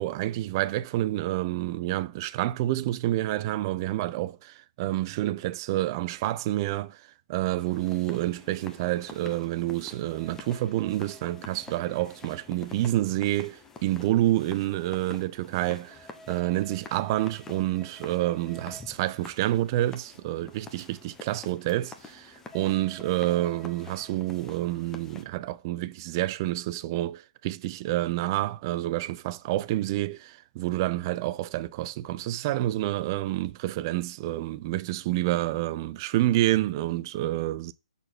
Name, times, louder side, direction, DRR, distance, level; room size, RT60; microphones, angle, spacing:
voice 1, 0.0-7.0 7.3-37.7, right 15 dB, 30° right, 0.5 m, -28 dB
sound 1, 7.6-25.2, left 3 dB, 10° left, 0.9 m, -47 dB
6.5 x 4.2 x 6.0 m
figure-of-eight pair, 135°, 4 cm